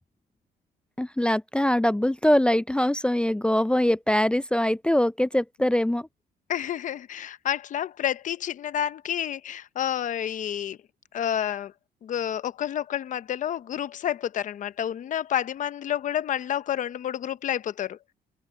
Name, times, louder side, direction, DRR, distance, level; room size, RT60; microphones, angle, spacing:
voice 1, 1.0-6.1, left 1 dB, 5° left, 0.5 m, -23 dB
voice 2, 6.5-10.8 11.1-11.7 12.0-18.0, left 10 dB, 50° left, 0.9 m, -29 dB
open air
cardioid pair, 110°, 17 cm